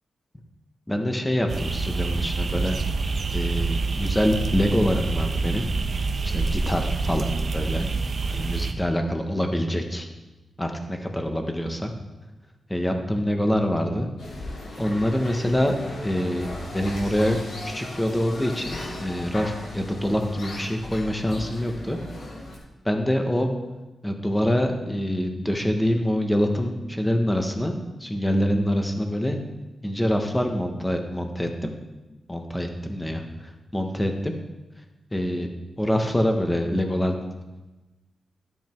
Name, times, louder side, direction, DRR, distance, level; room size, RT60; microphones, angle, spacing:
voice 1, 0.9-2.8 3.3-5.7 6.2-7.9 8.3-10.1 10.6-11.9 12.7-14.1 14.8-15.7 16.0-16.5 16.7-17.4 17.6-22.0 22.8-23.5 24.0-27.7 28.0-29.4 29.8-31.7 32.3-34.3 35.1-35.5 35.8-37.1, equal, 10° left, 4 dB, 1.2 m, -25 dB
sound 1, 1.5-8.7, right 3 dB, 45° right, 1.0 m, -26 dB
sound 2, 14.2-22.6, left 1 dB, 65° left, 3.3 m, -37 dB
13.0 x 9.2 x 4.5 m, 1.1 s
wide cardioid pair, 150°, 0 cm